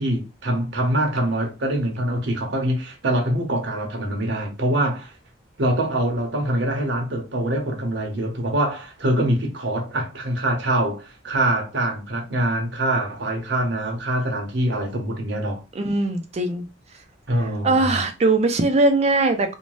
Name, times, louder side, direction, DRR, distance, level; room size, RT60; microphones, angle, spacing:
voice 1, 0.0-5.1 5.6-15.6 17.3-18.0, right 1 dB, 65° right, 0.8 m, -24 dB
voice 2, 15.7-16.7 17.6-19.6, right 2 dB, 35° right, 0.4 m, -20 dB
2.6 x 2.1 x 3.1 m
head